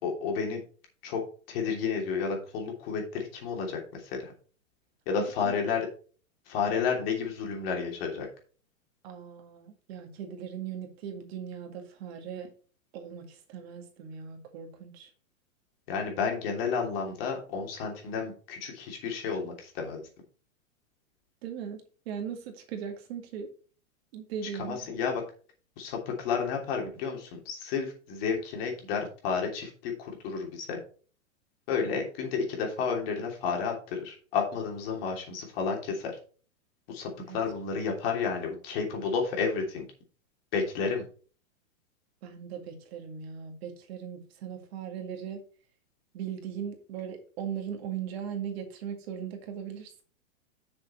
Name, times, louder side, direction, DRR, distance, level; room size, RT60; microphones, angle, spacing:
voice 1, 0.0-0.6 1.0-1.2 1.5-4.3 5.1-5.8 6.5-8.3 15.9-20.0 24.6-25.2 25.8-30.8 31.7-36.2 36.9-39.8 40.5-41.0, left 5 dB, 45° left, 1 dB, 3.0 m, -31 dB
voice 2, 9.0-12.5 12.9-15.1 21.4-23.5 24.1-24.8 37.2-37.4 42.2-45.4 46.1-50.0, right 8 dB, 50° right, 4 dB, 2.1 m, -39 dB
7.3 x 6.8 x 4.3 m, 0.39 s
hypercardioid pair, 155°, 41 cm